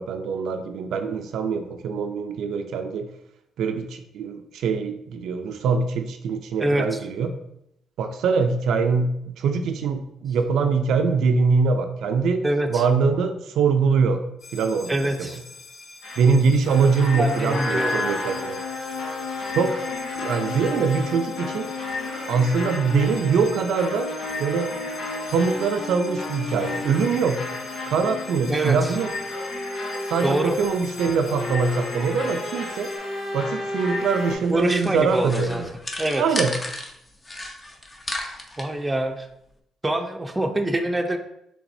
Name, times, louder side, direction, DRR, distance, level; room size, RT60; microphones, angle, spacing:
voice 1, 0.0-3.1 3.6-7.3 8.0-12.4 12.7-14.2 14.5-15.3 16.2-18.6 19.5-19.8 20.1-21.7 22.3-24.1 24.4-24.7 25.3-27.4 27.9-29.1 30.1-32.9 33.3-35.7 36.2-36.5, right 5 dB, 75° right, 6 dB, 0.4 m, -23 dB
voice 2, 6.6-7.0 12.4-12.8 14.8-15.4 17.1-17.9 28.5-29.0 30.2-30.6 34.5-35.6 36.0-36.4 38.6-39.3 39.8-41.2, right 1 dB, 15° right, 5 dB, 0.5 m, -25 dB
sound 1, 14.4-33.0, left 2 dB, 60° left, 1.0 m, -38 dB
sound 2, 16.0-34.3, left 2 dB, 90° left, 1.1 m, -32 dB
sound 3, 34.3-36.9 37.2-38.7, left 1 dB, 25° left, 0.7 m, -34 dB
5.9 x 3.4 x 2.7 m, 0.78 s
cardioid pair, 90°, 0 cm